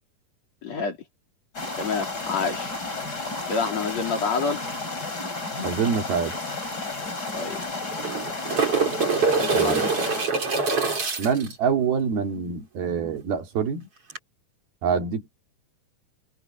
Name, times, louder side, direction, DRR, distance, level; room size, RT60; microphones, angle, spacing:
voice 1, 0.6-1.0 1.8-2.7 3.5-4.6 7.3-7.6 9.4-10.1, left 4 dB, 45° left, 4.2 m, -28 dB
sound 1, 1.5-10.3, left 3 dB, 25° left, 5.4 m, -32 dB
voice 2, 5.6-6.3 9.5-9.9 11.2-13.9 14.8-15.3, right 6 dB, 85° right, 4.8 m, -25 dB
sound 2, 6.3-6.4 6.7-6.8 7.8-11.5 14.1-14.2, right 4 dB, 40° right, 5.0 m, -24 dB
omnidirectional pair, 4.2 m